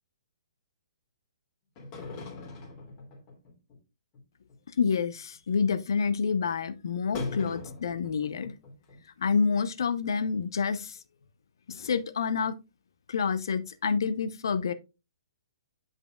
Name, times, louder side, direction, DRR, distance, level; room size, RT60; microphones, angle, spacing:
sound 1, 1.8-3.8 4.1-4.2 4.5-4.6 4.9-5.2 5.5-5.6 7.1-9.0 9.3-9.4 9.8-9.9 10.2-10.3, left 3 dB, 35° left, 2.6 m, -40 dB
voice 1, 4.8-8.5 9.2-11.0 11.7-12.5 13.1-14.7, left 5 dB, 60° left, 0.7 m, -28 dB
8.2 x 5.4 x 2.3 m
figure-of-eight pair, 120°, 2 cm